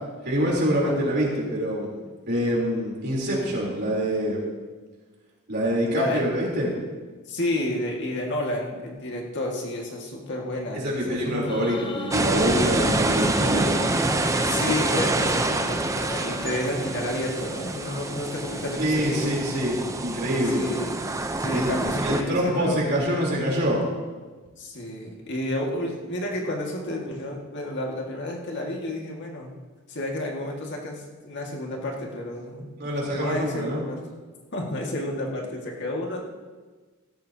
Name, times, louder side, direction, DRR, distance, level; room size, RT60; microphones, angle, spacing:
voice 1, 0.2-1.9 2.3-4.4 5.5-6.7 10.7-13.8 18.8-20.7 21.5-21.7 22.0-23.8 32.8-33.9, equal, 50° right, -3 dB, 3.6 m, -25 dB
voice 2, 5.9-6.2 7.3-11.7 14.4-19.3 20.5-21.0 21.4-23.0 24.6-29.5 29.9-32.7 33.1-34.0 34.5-36.2, left 1 dB, 55° left, -1 dB, 2.0 m, -31 dB
sound 1, 11.5-19.1, left 2 dB, 25° left, 0.7 m, -38 dB
sound 2, 12.1-22.2, right 2 dB, 15° right, 0.7 m, -26 dB
16.0 x 13.0 x 2.9 m, 1.4 s
head